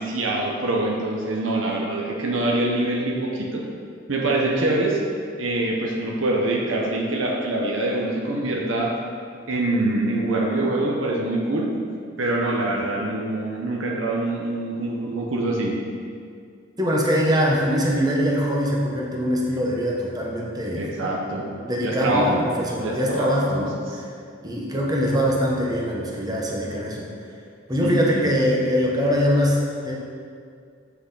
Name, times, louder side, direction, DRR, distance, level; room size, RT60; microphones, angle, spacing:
voice 1, 0.0-3.6 4.1-5.0 5.4-8.9 9.5-11.8 12.2-15.8 20.7-21.5 21.8-22.4 22.8-24.0 27.8-28.2, right 2 dB, 80° right, -1 dB, 0.9 m, -24 dB
voice 2, 16.8-20.9 21.6-24.1 24.4-27.1 27.7-30.0, equal, 20° right, -2 dB, 1.0 m, -23 dB
7.9 x 6.1 x 4.0 m, 2.2 s
head